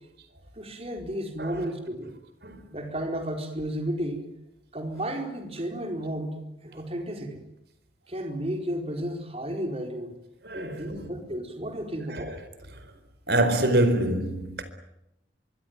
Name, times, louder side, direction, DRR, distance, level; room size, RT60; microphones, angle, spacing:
voice 1, 0.5-2.1 2.7-4.2 4.7-7.4 8.1-10.2 10.5-12.4, right 1 dB, 35° right, 4.4 m, -33 dB
voice 2, 10.4-11.2 12.1-12.4 13.3-14.6, right 1 dB, 65° right, 4.5 m, -26 dB
25.0 x 24.0 x 9.5 m
head